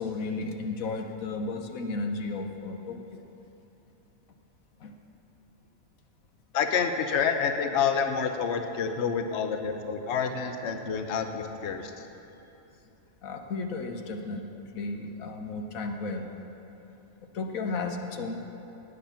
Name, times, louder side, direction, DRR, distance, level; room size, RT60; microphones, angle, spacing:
voice 1, 0.0-3.2 4.8-4.9 13.2-14.4 14.7-16.3 17.3-18.4, left 3 dB, 90° left, 5 dB, 1.4 m, -33 dB
voice 2, 6.5-12.0, left 6 dB, 60° left, 6 dB, 1.1 m, -28 dB
18.0 x 9.3 x 5.8 m, 3.0 s
omnidirectional pair, 1.4 m